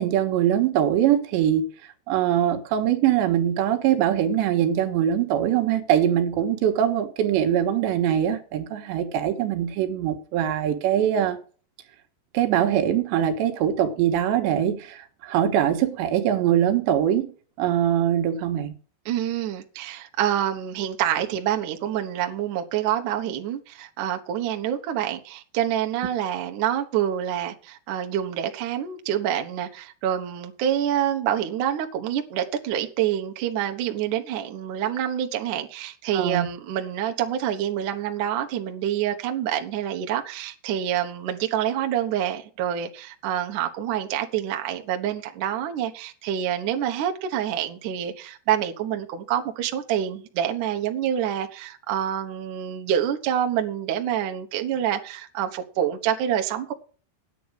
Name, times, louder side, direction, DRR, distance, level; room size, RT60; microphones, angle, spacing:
voice 1, 0.0-1.7 2.1-11.4 12.3-17.2 17.6-18.7 36.1-36.5, right 10 dB, 80° right, 3.5 m, -22 dB
voice 2, 19.1-56.7, right 10 dB, 65° right, 2.1 m, -27 dB
9.3 x 9.3 x 6.3 m
omnidirectional pair, 5.0 m